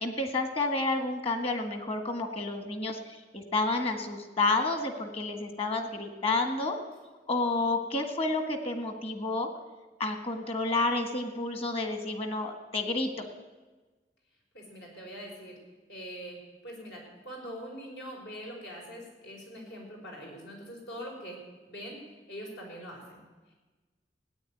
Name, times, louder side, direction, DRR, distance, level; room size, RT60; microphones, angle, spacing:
voice 1, 0.0-6.8 7.3-9.5 10.0-13.3, left 2 dB, 35° left, 6 dB, 1.7 m, -30 dB
voice 2, 14.5-15.6 15.9-21.4 21.7-22.0 22.3-23.2, equal, 75° left, 0 dB, 5.3 m, -43 dB
16.0 x 9.8 x 9.3 m, 1.3 s
head